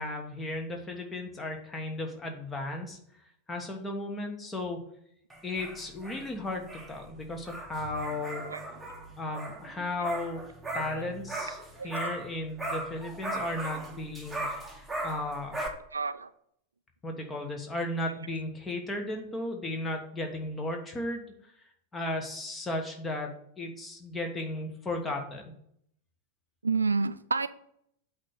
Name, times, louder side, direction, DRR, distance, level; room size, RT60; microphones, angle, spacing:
voice 1, 0.0-3.0 3.5-4.8 5.4-8.5 9.2-10.4 10.7-15.6 17.0-21.2 21.9-25.4, left 1 dB, 15° left, 1.4 m, -35 dB
sound 1, 5.3-12.3 12.6-15.7, right 1 dB, 5° right, 1.2 m, -38 dB
voice 2, 15.9-16.3 26.6-27.5, right 4 dB, 75° right, 0.3 m, -29 dB
8.2 x 3.3 x 6.5 m
figure-of-eight pair, 90°, 0 cm